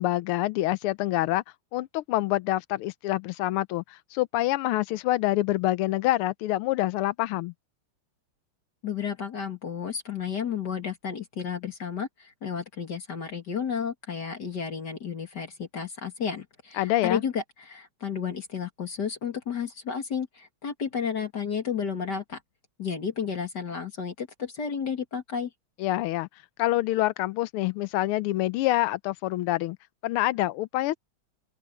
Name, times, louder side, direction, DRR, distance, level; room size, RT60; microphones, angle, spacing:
voice 1, 0.0-1.4 1.7-7.5 16.7-17.2 25.8-26.3 26.6-29.8 30.0-31.0, left 16 dB, 90° left, 1.5 m, -26 dB
voice 2, 8.8-22.4 22.8-25.5, left 7 dB, 50° left, 2.6 m, -32 dB
open air
omnidirectional pair, 2.4 m